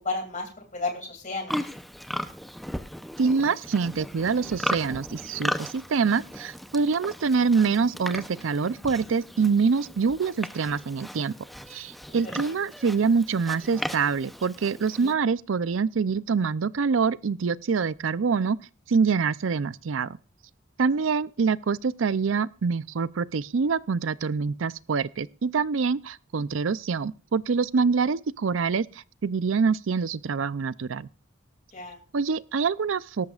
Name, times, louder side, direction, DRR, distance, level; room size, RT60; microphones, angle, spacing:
voice 1, 0.0-1.6 12.2-12.5 15.0-15.1 31.7-32.0, left 3 dB, 40° left, 2.6 m, -33 dB
Livestock farm animals working animals, 1.5-15.1, equal, ahead, 0.7 m, -36 dB
voice 2, 3.2-11.3 11.7-18.6 18.9-20.2 20.8-28.9 29.2-31.1 32.1-33.3, right 5 dB, 90° right, 0.5 m, -25 dB
18.0 x 13.0 x 2.4 m
head